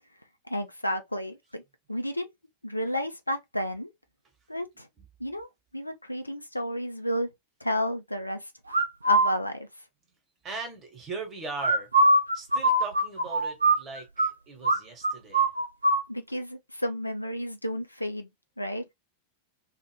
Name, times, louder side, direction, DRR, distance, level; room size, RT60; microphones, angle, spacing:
voice 1, 0.5-1.6 1.9-2.3 2.6-3.9 4.5-4.9 5.2-5.5 5.7-7.3 7.6-8.5 9.0-9.7 16.1-18.3 18.6-18.8, equal, 85° left, 0.5 m, -31 dB
sound 1, 8.7-9.3 11.6-14.3 14.6-14.8 15.0-16.0, right 1 dB, 80° right, 0.4 m, -22 dB
voice 2, 10.4-11.9 12.3-15.5, right 3 dB, 25° right, 1.2 m, -39 dB
2.5 x 2.4 x 3.1 m
figure-of-eight pair, 90°, 0 cm